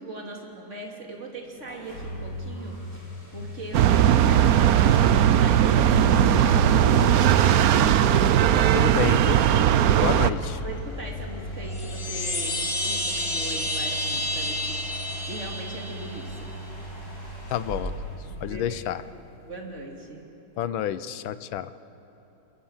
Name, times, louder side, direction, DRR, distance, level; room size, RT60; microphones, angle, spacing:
voice 1, 0.0-7.0 9.9-10.2 10.6-16.6 18.4-18.8 19.4-20.3, right 2 dB, 35° right, 0 dB, 3.3 m, -39 dB
sound 1, 1.6-19.1, right 1 dB, 70° left, 7.6 m, -34 dB
sound 2, 3.7-10.3, right 10 dB, 65° right, 1.0 m, -19 dB
voice 2, 8.7-9.7 10.0-10.4 17.5-18.0 18.4-19.0 20.6-21.7, left 11 dB, 90° left, 14 dB, 1.6 m, -29 dB
Chime, 11.6-16.3, left 1 dB, 40° left, 2.6 m, -30 dB
27.5 x 23.0 x 7.4 m, 3.0 s
omnidirectional pair, 2.1 m